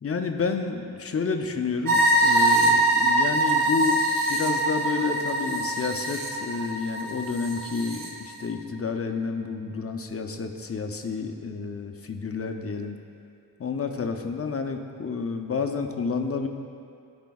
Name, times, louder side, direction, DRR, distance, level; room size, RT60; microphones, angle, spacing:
voice 1, 0.0-4.0 4.3-13.0 13.6-16.5, left 5 dB, 40° left, 5 dB, 0.5 m, -30 dB
sound 1, 1.8-8.1, right 1 dB, 60° right, 1.1 m, -23 dB
14.0 x 5.1 x 2.3 m, 2.5 s
wide cardioid pair, 115°, 37 cm